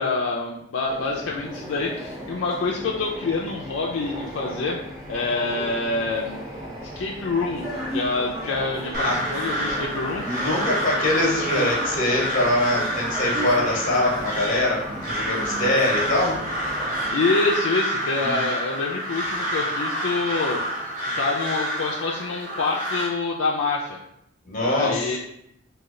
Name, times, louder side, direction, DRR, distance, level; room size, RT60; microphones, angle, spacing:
voice 1, 0.0-4.8 5.1-6.4 7.0-10.3 17.1-20.6 21.2-24.0 24.6-25.2, left 3 dB, 65° left, -2 dB, 0.4 m, -26 dB
sound 1, 0.8-17.1, equal, 25° right, 1.1 m, -35 dB
Crow, 8.9-23.1, right 1 dB, 45° right, 0.8 m, -28 dB
voice 2, 10.2-16.4 18.2-18.5 24.5-25.2, left 1 dB, 40° left, -2 dB, 0.9 m, -23 dB
3.1 x 2.3 x 3.6 m, 0.78 s
head